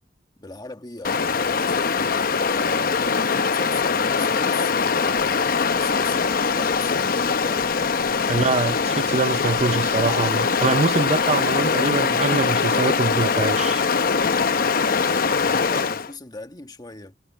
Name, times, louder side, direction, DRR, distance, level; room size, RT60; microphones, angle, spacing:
voice 1, 0.4-3.0 3.5-7.8 15.6-17.2, left 2 dB, 20° left, 1.5 m, -39 dB
Stream, 1.0-16.1, left 5 dB, 55° left, 0.8 m, -22 dB
voice 2, 8.3-13.8, right 3 dB, 40° right, 0.6 m, -24 dB
head